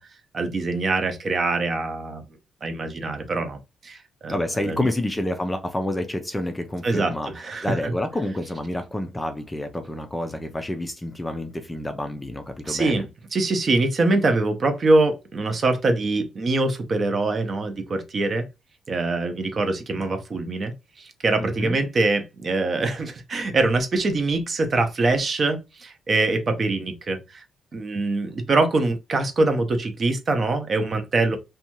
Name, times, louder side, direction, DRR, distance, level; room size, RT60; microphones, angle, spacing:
voice 1, 0.3-2.2 2.6-3.6 3.8-4.4 4.6-4.9 6.8-7.9 12.7-13.0 13.3-18.5 18.9-27.4 27.7-31.4, right 2 dB, 40° right, 0.6 m, -24 dB
voice 2, 4.3-7.3 7.6-13.1 21.4-21.8, left 1 dB, 10° left, 0.4 m, -28 dB
2.7 x 2.2 x 2.8 m
cardioid pair, 130°, 0 cm